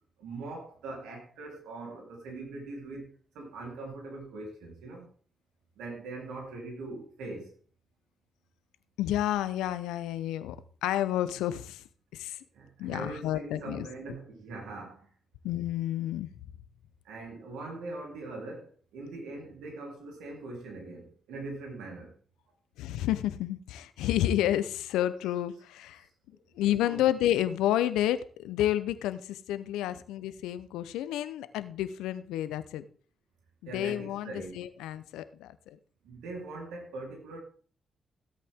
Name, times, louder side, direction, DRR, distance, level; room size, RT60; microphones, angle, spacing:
voice 1, 0.2-5.0 5.8-7.5 12.5-15.1 17.1-22.1 26.8-27.1 33.7-34.6 36.0-37.4, right 2 dB, 80° right, 3.8 m, -41 dB
voice 2, 9.0-10.6 10.8-11.8 12.1-12.4 12.8-13.9 15.4-16.3 22.8-26.0 26.5-32.9 33.6-35.8, left 12 dB, 85° left, 0.8 m, -30 dB
16.5 x 8.5 x 3.7 m
hypercardioid pair, 45°, 0 cm